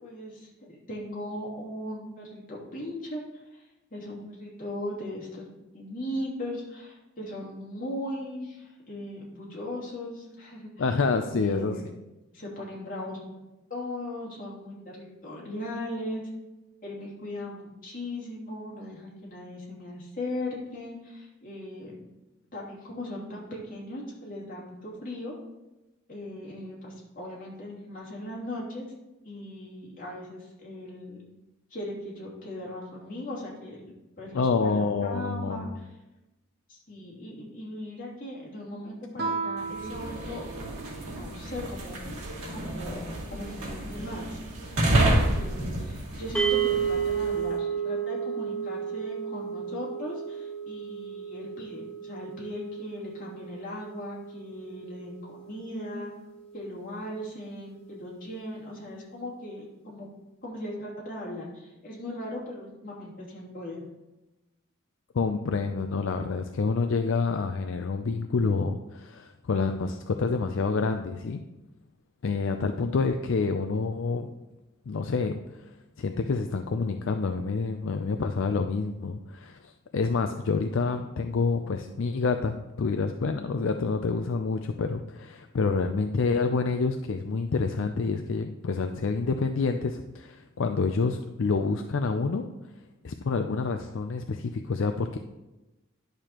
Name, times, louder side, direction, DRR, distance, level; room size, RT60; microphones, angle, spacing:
voice 1, 0.0-3.6 3.9-5.5 5.7-11.8 12.3-13.2 13.7-16.2 16.8-22.1 22.5-25.4 26.1-28.9 29.2-31.2 31.7-35.9 36.7-40.4 41.1-44.4 44.7-56.1 56.5-60.1 60.4-63.9, left 1 dB, 40° left, -6 dB, 2.8 m, -38 dB
voice 2, 10.8-11.8 34.3-35.8 65.1-71.4 72.2-74.3 74.9-75.6 76.0-92.5 93.0-95.2, left 4 dB, 65° left, 6 dB, 0.4 m, -28 dB
Guitar, 39.2-41.6, right 4 dB, 50° right, 0.9 m, -35 dB
sound 1, 39.6-47.4, right 1 dB, 90° right, 2.1 m, -30 dB
sound 2, 46.3-56.6, right 7 dB, 5° left, 0.9 m, -33 dB
11.0 x 6.6 x 3.0 m, 1.0 s
head